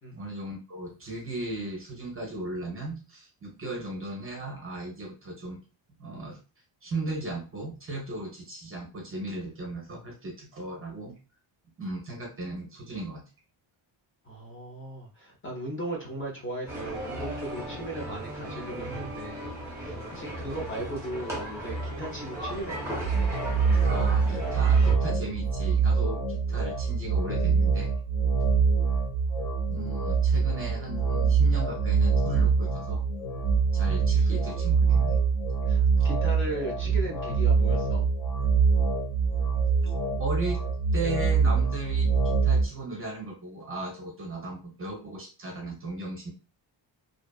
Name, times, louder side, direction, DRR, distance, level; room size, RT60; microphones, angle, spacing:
voice 1, 0.1-5.6 6.0-6.4 6.8-11.1 11.8-13.2 23.8-27.9 29.7-33.0 33.7-35.2 39.8-40.6 40.9-46.3, right 2 dB, 30° right, 0 dB, 0.5 m, -36 dB
voice 2, 14.2-23.1 28.5-28.6 35.6-38.1, right 1 dB, 25° left, -1 dB, 0.6 m, -37 dB
sound 1, 16.7-24.9, right 1 dB, 5° right, 0.9 m, -36 dB
sound 2, 23.0-42.6, right 5 dB, 55° left, 1.3 m, -24 dB
2.6 x 2.3 x 2.2 m, 0.34 s
wide cardioid pair, 165°, 47 cm